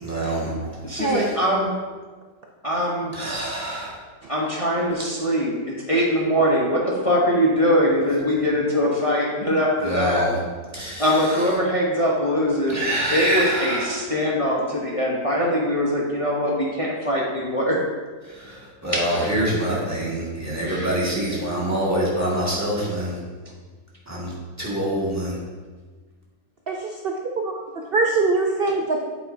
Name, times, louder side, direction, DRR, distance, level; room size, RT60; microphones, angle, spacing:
voice 1, 0.0-0.5 0.9-1.1 3.1-3.9 9.8-10.3 10.7-11.1 12.7-14.0 18.4-23.2 24.1-25.4, right 1 dB, 10° right, -6 dB, 1.9 m, -25 dB
voice 2, 0.8-1.7 2.6-3.1 4.3-10.2 11.0-12.8 13.1-17.8 18.9-19.4 20.6-21.0, equal, 25° left, -4 dB, 0.9 m, -22 dB
voice 3, 27.9-29.0, right 3 dB, 70° right, 1 dB, 0.5 m, -22 dB
8.3 x 8.2 x 2.7 m, 1.4 s
omnidirectional pair, 1.7 m